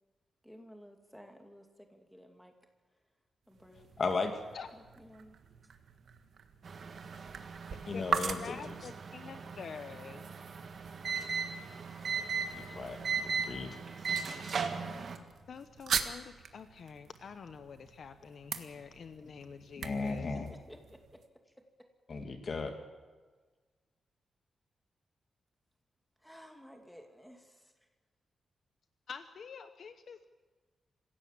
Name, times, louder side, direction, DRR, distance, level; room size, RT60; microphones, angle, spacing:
voice 1, 0.4-1.6 1.9-2.5 3.5-3.9 4.7-5.4 20.5-20.8 26.2-27.7, equal, ahead, 4 dB, 2.5 m, -54 dB
sound 1, 3.4-21.3, right 6 dB, 65° right, 1.5 m, -42 dB
voice 2, 4.0-4.4 7.9-8.6 12.5-13.0 13.4-13.7 19.8-20.5 22.1-22.7, left 4 dB, 40° left, 5 dB, 1.9 m, -35 dB
sound 2, 6.6-15.2, right 6 dB, 50° right, 1.8 m, -38 dB
voice 3, 8.4-10.3 15.5-20.4 29.1-30.3, left 6 dB, 55° left, 9 dB, 0.9 m, -47 dB
26.0 x 16.5 x 7.4 m, 1.4 s
wide cardioid pair, 150°, 0 cm